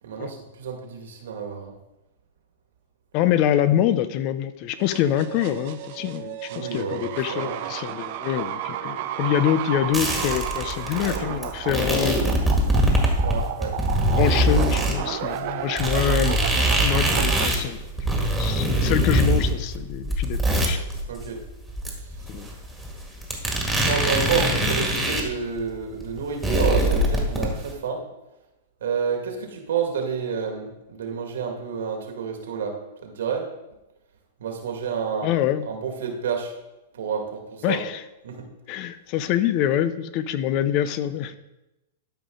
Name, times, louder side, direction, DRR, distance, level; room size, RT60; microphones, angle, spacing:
voice 1, 0.0-1.7 6.5-7.6 13.2-13.7 21.1-21.4 23.8-28.0 28.8-32.8 33.0-33.4 34.4-35.3 35.7-36.5 36.9-37.8 38.2-38.4, right 6 dB, 80° right, 2 dB, 2.0 m, -29 dB
voice 2, 3.1-12.4 14.1-16.4 16.7-20.8 22.3-22.5 23.7-23.8 25.0-25.2 35.2-35.7 37.6-38.0 38.7-41.4, left 10 dB, 45° left, 13 dB, 0.7 m, -25 dB
sound 1, 4.8-17.5, right 11 dB, 55° right, 0.7 m, -33 dB
sound 2, 9.9-14.9 15.4-15.5 15.8-25.3 25.6-25.7 25.9-27.7, right 1 dB, 5° right, 1.9 m, -23 dB
12.5 x 5.1 x 3.9 m, 0.97 s
hypercardioid pair, 125°, 0 cm